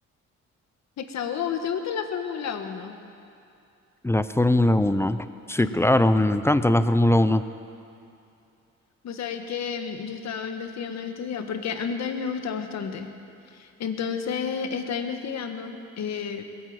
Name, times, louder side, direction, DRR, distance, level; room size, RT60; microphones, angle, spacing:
voice 1, 1.0-3.0 5.6-6.1 9.0-13.1 13.5-16.4, left 6 dB, 65° left, 6 dB, 1.4 m, -31 dB
voice 2, 4.0-5.2 5.5-7.4, left 1 dB, 10° left, 12 dB, 0.5 m, -20 dB
20.5 x 8.9 x 7.8 m, 2.6 s
cardioid pair, 90°, 30 cm